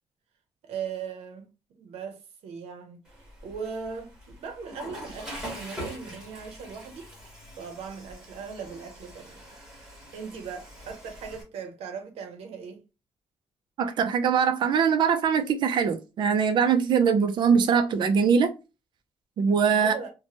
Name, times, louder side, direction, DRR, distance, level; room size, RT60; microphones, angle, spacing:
voice 1, 0.6-3.0 3.4-7.1 7.6-9.4 10.1-12.8 19.8-20.1, right 6 dB, 80° right, 0.8 m, -39 dB
Water / Toilet flush, 3.1-11.4, equal, 5° right, 1.2 m, -43 dB
voice 2, 13.8-18.5 19.4-19.9, right 6 dB, 50° right, 0.5 m, -22 dB
2.9 x 2.1 x 2.9 m
cardioid pair, 180°, 10 cm